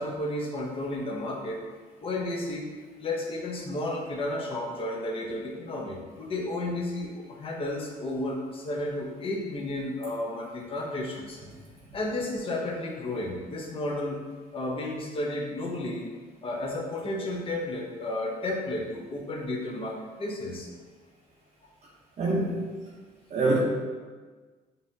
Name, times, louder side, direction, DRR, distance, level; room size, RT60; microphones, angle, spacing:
voice 1, 0.0-1.6 2.0-2.7 3.0-11.4 11.9-14.2 14.5-16.1 16.4-20.7, left 1 dB, 35° left, 0 dB, 0.7 m, -32 dB
voice 2, 22.2-22.5 23.3-23.6, right 2 dB, 40° right, -6 dB, 0.7 m, -24 dB
5.3 x 2.7 x 2.7 m, 1.4 s
cardioid pair, 110°, 17 cm